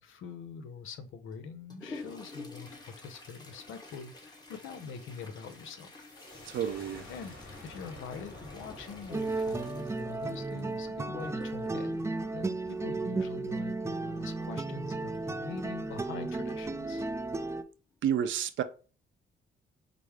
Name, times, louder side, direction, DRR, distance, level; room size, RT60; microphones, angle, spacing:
voice 1, 0.0-5.9 7.1-7.3 7.6-12.0 12.3-17.1, left 5 dB, 80° left, 0.7 m, -44 dB
Toilet flush, 1.3-13.3 15.1-15.2 15.6-15.7 16.5-16.6 17.2-17.5 17.9-18.1, left 2 dB, 20° left, 1.2 m, -49 dB
sound 1, 5.9-11.5, left 2 dB, 45° left, 2.5 m, -50 dB
voice 2, 6.5-7.1 18.0-18.6, right 9 dB, 75° right, 0.6 m, -30 dB
sound 2, 9.1-17.6, right 3 dB, 15° right, 0.3 m, -34 dB
5.1 x 2.0 x 4.6 m
cardioid pair, 90°, 20 cm